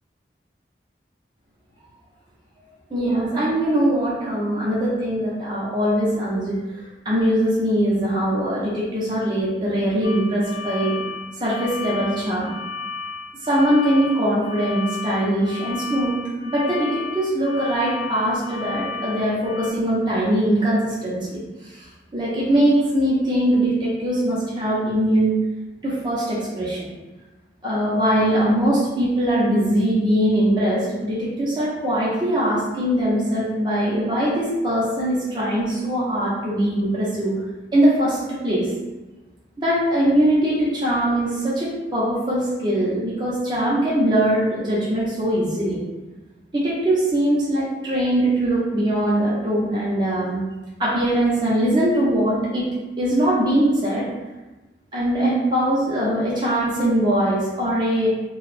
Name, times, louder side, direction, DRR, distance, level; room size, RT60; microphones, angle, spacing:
voice 1, 2.9-6.6 7.0-10.9 11.3-12.6 13.4-25.4 25.8-26.9 27.6-37.4 37.7-38.7 39.6-45.8 46.5-50.4 50.8-52.7 53.0-54.1 54.9-58.1, right 1 dB, 25° right, -8 dB, 0.7 m, -21 dB
sound 1, 10.0-19.7, left 4 dB, 65° left, 0.6 m, -34 dB
2.9 x 2.3 x 3.2 m, 1.1 s
head